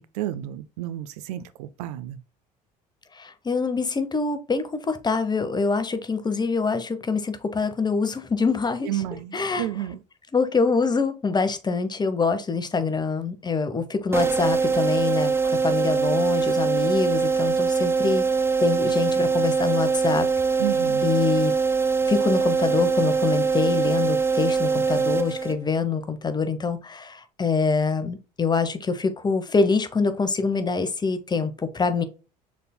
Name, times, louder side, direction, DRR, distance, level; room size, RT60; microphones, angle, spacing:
voice 1, 0.0-2.2 8.8-10.0 20.6-21.1, right 13 dB, 65° right, 0.5 m, -31 dB
voice 2, 3.1-8.9 9.3-9.7 10.3-18.2 18.6-20.3 21.0-21.5 22.1-32.0, left 4 dB, 20° left, 0.9 m, -25 dB
sound 1, 14.1-25.8, right 5 dB, 10° right, 0.6 m, -23 dB
6.6 x 3.5 x 2.2 m
figure-of-eight pair, 60°, 21 cm